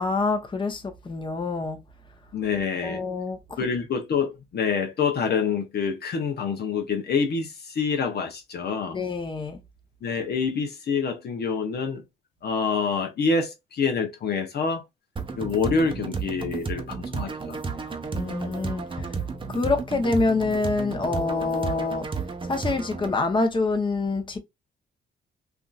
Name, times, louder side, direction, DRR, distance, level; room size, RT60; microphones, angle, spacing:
voice 1, 0.0-1.8 2.8-3.6 8.9-9.6 18.1-19.2 19.5-22.1 22.4-24.4, left 3 dB, 25° left, 0.9 m, -26 dB
voice 2, 2.3-3.0 3.6-9.0 10.0-12.0 12.4-14.8 15.4-18.0, left 5 dB, 55° left, 0.8 m, -26 dB
sound 1, 15.2-23.2, right 5 dB, 25° right, 0.7 m, -32 dB
3.4 x 2.6 x 2.4 m
cardioid pair, 90°, 20 cm